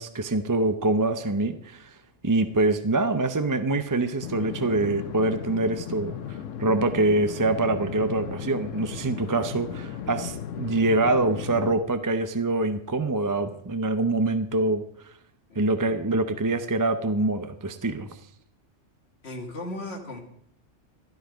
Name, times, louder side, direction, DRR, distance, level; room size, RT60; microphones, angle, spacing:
voice 1, 0.0-2.0 2.2-14.8 15.6-18.1, right 2 dB, 25° right, 9 dB, 0.5 m, -25 dB
sound 1, 4.2-11.8, left 8 dB, 90° left, 1.2 m, -36 dB
voice 2, 15.5-16.3 19.2-20.2, left 1 dB, 60° left, 1 dB, 2.2 m, -38 dB
13.5 x 12.0 x 5.0 m, 0.68 s
omnidirectional pair, 1.3 m